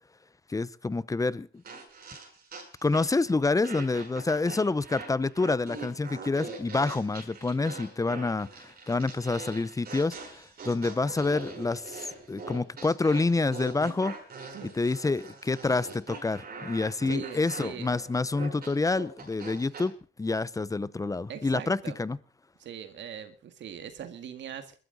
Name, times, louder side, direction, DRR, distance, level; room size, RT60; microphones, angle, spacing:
voice 1, 0.5-1.6 2.8-12.0 12.3-14.1 14.6-19.9 20.2-22.2, left 3 dB, 15° left, 0.7 m, -28 dB
sound 1, 1.6-3.3 3.6-19.9, right 4 dB, 50° right, 7.7 m, -42 dB
voice 2, 17.1-17.9 21.3-22.0 22.6-24.8, right 9 dB, 65° right, 2.0 m, -41 dB
21.0 x 13.0 x 4.0 m
cardioid pair, 90°, 20 cm